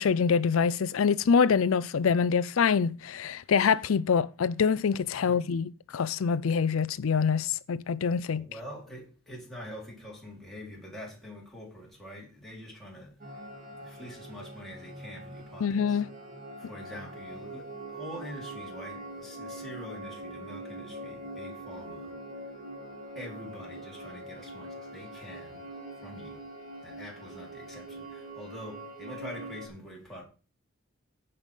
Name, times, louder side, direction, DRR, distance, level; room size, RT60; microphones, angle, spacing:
voice 1, 0.0-8.4 15.6-16.1, left 6 dB, 70° left, 0.4 m, -25 dB
voice 2, 5.1-5.5 8.2-13.1 13.8-16.0 16.6-22.1 23.2-25.6 26.0-26.4 26.8-30.2, equal, ahead, 4.3 m, -45 dB
sound 1, 13.2-29.7, right 1 dB, 40° right, 2.3 m, -43 dB
15.0 x 5.5 x 5.3 m
head